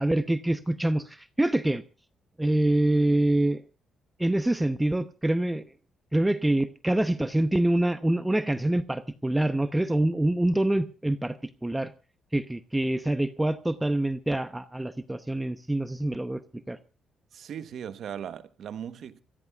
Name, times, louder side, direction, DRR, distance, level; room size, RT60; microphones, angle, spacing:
voice 1, 0.0-1.8 2.4-3.6 4.2-5.6 6.1-11.9 12.3-16.4 16.7-16.8, right 1 dB, 10° right, 0.8 m, -25 dB
voice 2, 17.3-19.2, right 9 dB, 65° right, 1.1 m, -38 dB
29.0 x 15.0 x 2.4 m
cardioid pair, 90°, 0 cm